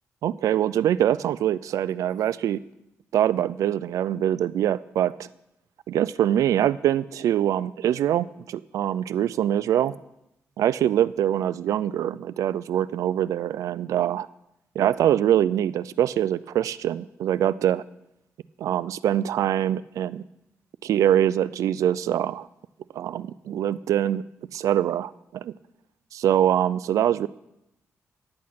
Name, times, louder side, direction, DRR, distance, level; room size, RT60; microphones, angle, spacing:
voice 1, 0.2-2.6 3.1-5.3 5.9-10.0 10.6-14.3 14.8-17.8 18.6-20.2 20.8-22.5 22.9-24.2 24.5-25.5 26.1-27.3, right 11 dB, 85° right, 17 dB, 0.3 m, -24 dB
11.0 x 8.4 x 5.9 m, 0.84 s
cardioid pair, 75°, 5 cm